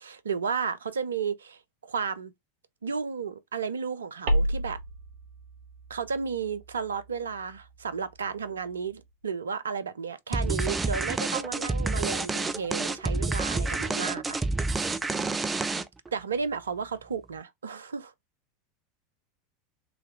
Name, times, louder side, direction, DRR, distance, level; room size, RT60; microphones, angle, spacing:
voice 1, 0.0-2.3 2.8-4.8 5.9-14.4 16.1-18.1, right 6 dB, 80° right, 0.4 m, -33 dB
sound 1, 4.3-9.1, equal, 60° right, 1.3 m, -33 dB
sound 2, 10.3-16.1, right 3 dB, 15° right, 0.5 m, -29 dB
3.8 x 3.2 x 3.2 m
figure-of-eight pair, 80°, 0 cm